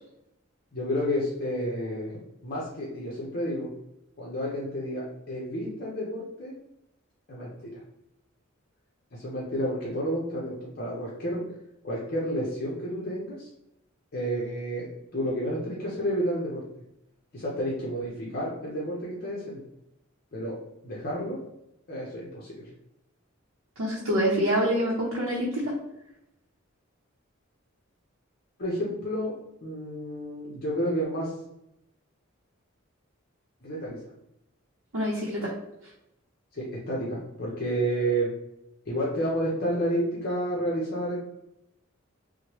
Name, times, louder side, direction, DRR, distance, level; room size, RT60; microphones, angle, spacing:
voice 1, 0.7-2.1 2.4-3.7 4.2-6.5 7.3-7.7 9.1-11.4 11.8-13.5 14.1-14.9 15.1-16.6 17.3-19.6 20.3-20.6 20.8-21.4 21.9-22.7 28.6-29.3 29.6-31.3 33.6-34.0 36.5-38.3 38.9-41.1, equal, 50° left, -5 dB, 0.6 m, -30 dB
voice 2, 23.8-25.7 34.9-35.5, equal, 80° right, -5 dB, 0.6 m, -26 dB
3.0 x 2.1 x 2.9 m, 0.84 s
head